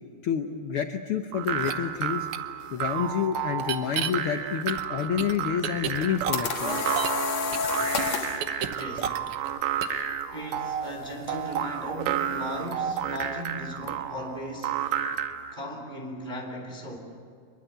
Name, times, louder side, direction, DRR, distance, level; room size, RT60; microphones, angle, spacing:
voice 1, 0.2-2.3 2.7-6.8, left 8 dB, 80° left, 5 dB, 1.2 m, -29 dB
sound 1, 1.3-15.5, right 9 dB, 90° right, 2.7 m, -31 dB
sound 2, 1.6-1.7 2.3-2.4 3.6-4.1 4.7-7.2 7.5-9.5 9.8-10.0, right 9 dB, 65° right, 1.4 m, -32 dB
sound 3, 5.9-8.4, left 6 dB, 60° left, 2.4 m, -29 dB
voice 2, 8.6-9.2 10.3-14.8 15.5-17.0, equal, 15° right, 1 dB, 3.2 m, -37 dB
26.0 x 22.0 x 8.2 m, 2.3 s
omnidirectional pair, 3.8 m